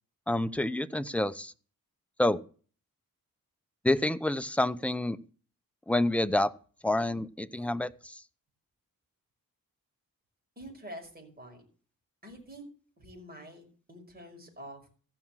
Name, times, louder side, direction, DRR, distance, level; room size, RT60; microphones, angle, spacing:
voice 1, 0.3-1.5 2.2-2.4 3.8-5.2 5.9-6.5 6.8-8.2, left 1 dB, 5° left, 12 dB, 0.7 m, -28 dB
voice 2, 10.6-11.6 12.2-12.6 13.0-14.9, equal, 25° right, 2 dB, 5.4 m, -47 dB
15.0 x 6.1 x 7.4 m, 0.41 s
wide cardioid pair, 100°, 34 cm